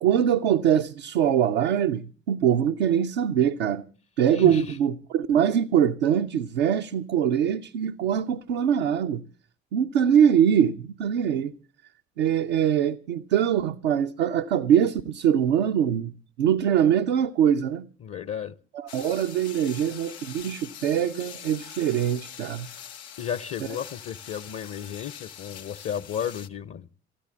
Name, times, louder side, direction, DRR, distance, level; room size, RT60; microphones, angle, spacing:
voice 1, 0.0-3.8 4.2-9.2 9.7-11.5 12.2-16.1 16.4-17.9 18.7-22.7, right 9 dB, 80° right, 0.7 m, -23 dB
voice 2, 4.3-4.8 18.0-18.6 23.2-26.9, left 8 dB, 45° left, 0.8 m, -33 dB
sound 1, 18.9-26.5, left 9 dB, 85° left, 0.7 m, -43 dB
13.5 x 10.0 x 8.5 m
hypercardioid pair, 40°, 32 cm